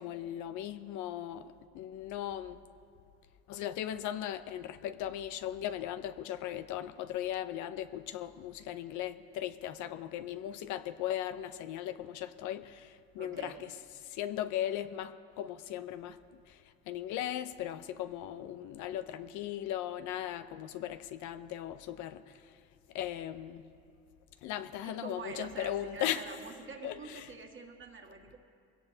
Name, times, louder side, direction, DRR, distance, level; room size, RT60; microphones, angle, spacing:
voice 1, 0.0-2.6 3.5-13.7 14.1-16.2 16.5-16.6 16.9-22.6 22.9-23.6 24.4-26.2 26.8-27.3, left 11 dB, 80° left, 0.7 m, -38 dB
voice 2, 13.2-13.7 24.8-28.4, right 5 dB, 40° right, 2.0 m, -46 dB
21.0 x 17.0 x 2.8 m
supercardioid pair, 80°, 29 cm